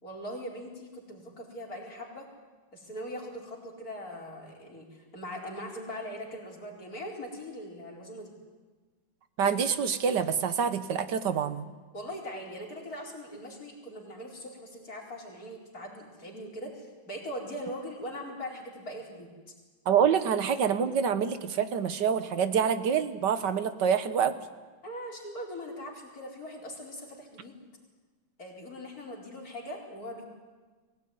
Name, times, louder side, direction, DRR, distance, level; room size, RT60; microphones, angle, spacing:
voice 1, 0.0-2.3 2.7-8.3 11.9-19.3 24.8-27.6 28.4-30.2, equal, 50° left, -2 dB, 5.0 m, -41 dB
voice 2, 9.4-11.7 19.9-24.4, right 7 dB, 70° right, 11 dB, 1.8 m, -26 dB
23.0 x 17.5 x 9.5 m, 1.3 s
omnidirectional pair, 2.0 m